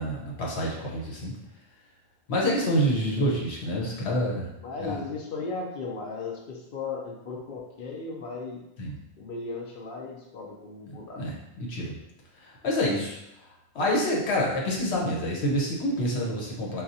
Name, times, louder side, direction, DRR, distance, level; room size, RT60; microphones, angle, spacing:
voice 1, 0.0-1.3 2.3-4.5 4.8-5.0 8.8-9.0 11.2-12.0 12.4-13.2 13.7-16.8, equal, 80° left, -3 dB, 1.2 m, -27 dB
voice 2, 3.8-4.4 4.6-8.6 9.2-11.2, left 4 dB, 60° left, -1 dB, 0.8 m, -36 dB
5.8 x 2.4 x 2.7 m, 0.86 s
omnidirectional pair, 1.1 m